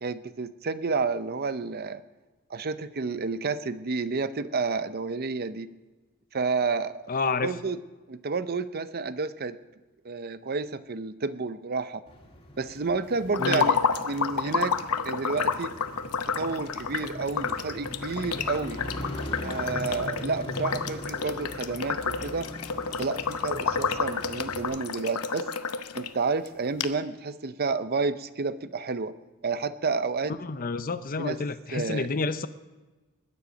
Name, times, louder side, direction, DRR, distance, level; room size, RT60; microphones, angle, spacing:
voice 1, 0.0-2.0 2.5-5.7 6.3-7.8 8.1-9.6 10.0-12.0 12.6-14.8 15.0-15.7 16.3-18.8 19.4-22.5 23.0-25.5 26.0-29.1 29.4-30.4 31.2-31.4 31.7-32.1, right 4 dB, 45° right, 13 dB, 0.6 m, -30 dB
voice 2, 7.1-7.5 13.4-13.7 30.4-32.5, left 4 dB, 40° left, 12 dB, 0.6 m, -29 dB
Motorcycle, 12.1-24.6, left 1 dB, 25° left, 2.4 m, -41 dB
sound 1, 13.3-26.1 26.4-26.5 26.8-26.9, left 5 dB, 85° left, 0.8 m, -30 dB
20.5 x 9.9 x 5.1 m, 1.2 s
head